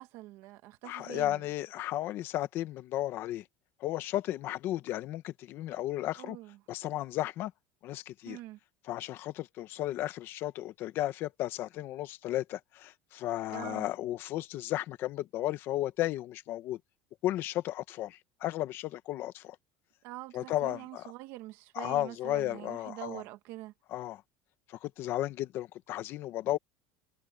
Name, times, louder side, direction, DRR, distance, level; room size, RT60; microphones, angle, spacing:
voice 1, 0.0-1.4 6.2-6.6 8.2-8.6 13.5-13.9 20.0-23.7, right 17 dB, 50° right, 1.5 m, -45 dB
voice 2, 0.8-3.4 3.8-6.4 6.7-7.5 7.8-8.4 8.9-16.8 17.2-19.6 20.3-21.1 21.8-23.2 23.9-24.2 24.7-26.6, left 14 dB, 40° left, 1.1 m, -34 dB
cardioid pair, 170°, 6 cm